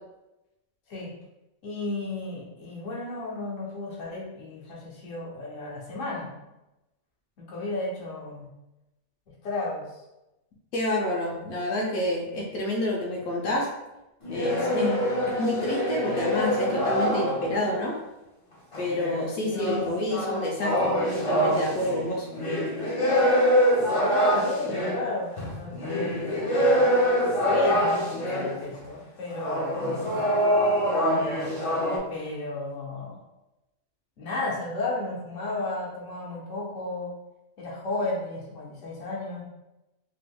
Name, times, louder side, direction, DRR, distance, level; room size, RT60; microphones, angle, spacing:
voice 1, 1.6-6.3 7.4-8.5 9.4-10.0 19.5-19.9 24.0-26.8 27.4-30.3 32.1-33.2 34.2-37.1 37.6-39.4, left 2 dB, 65° left, -5 dB, 1.2 m, -33 dB
voice 2, 10.7-13.7 14.3-17.9 18.8-22.3, left 1 dB, 85° left, -3 dB, 1.2 m, -28 dB
sound 1, 14.2-17.7 18.7-28.6 29.3-32.0, equal, 45° left, 0.4 m, -25 dB
3.5 x 2.9 x 2.2 m, 0.96 s
omnidirectional pair, 1.5 m